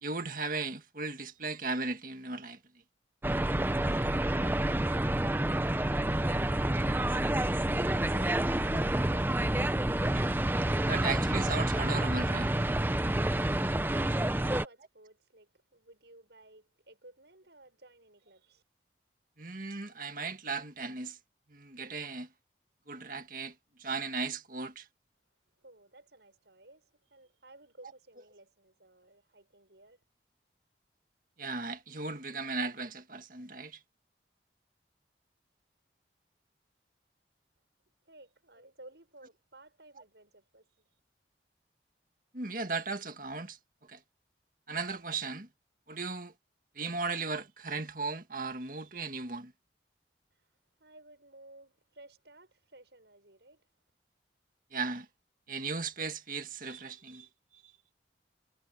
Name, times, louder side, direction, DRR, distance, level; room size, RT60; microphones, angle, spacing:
voice 1, 0.0-2.6 8.1-8.3 10.0-10.3 10.8-12.5 19.4-21.2 21.5-22.3 22.9-23.5 23.8-24.9 31.4-33.8 42.3-43.6 43.9-44.0 44.7-45.5 45.9-46.3 46.8-49.5 54.7-55.1 55.5-57.3, right 4 dB, 45° right, 2.0 m, -36 dB
sound 1, 3.2-14.6, right 1 dB, 10° right, 0.6 m, -28 dB
voice 2, 13.0-18.6 25.6-30.0 38.1-40.9 50.3-50.5 50.8-53.7, right 2 dB, 70° right, 6.9 m, -57 dB
head